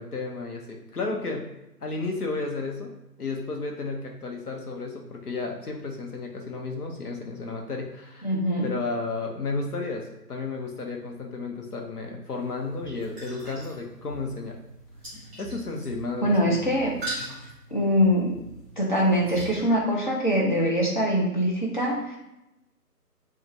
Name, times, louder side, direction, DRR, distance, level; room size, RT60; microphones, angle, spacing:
voice 1, 0.0-1.5 1.8-2.9 3.2-8.3 8.6-14.5 15.4-16.6 17.2-17.4, left 3 dB, 65° left, 1 dB, 1.0 m, -33 dB
voice 2, 8.2-8.7 16.2-17.0 17.7-18.4 18.8-22.2, equal, 30° left, -4 dB, 0.7 m, -23 dB
sound 1, 12.3-19.6, right 2 dB, ahead, 1.5 m, -41 dB
4.9 x 2.5 x 2.7 m, 0.90 s
figure-of-eight pair, 155°, 48 cm